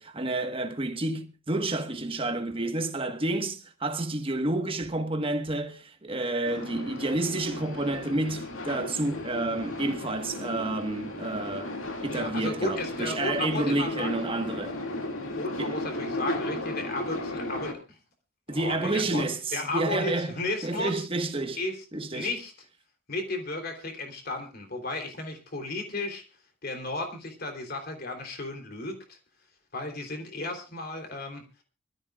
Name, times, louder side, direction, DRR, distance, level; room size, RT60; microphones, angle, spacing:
voice 1, 0.0-11.7 12.0-14.8 15.6-15.7 18.5-20.3 20.6-21.6 21.9-22.3, right 2 dB, 25° right, 1.4 m, -30 dB
sound 1, 6.4-17.7, left 1 dB, 70° left, 2.3 m, -35 dB
voice 2, 12.1-14.2 15.4-17.8 18.5-19.2 19.5-21.1 21.6-21.7 22.1-22.5 23.1-26.2 26.6-29.2 29.7-31.4, left 2 dB, 45° left, 3.4 m, -34 dB
25.0 x 14.0 x 2.4 m
head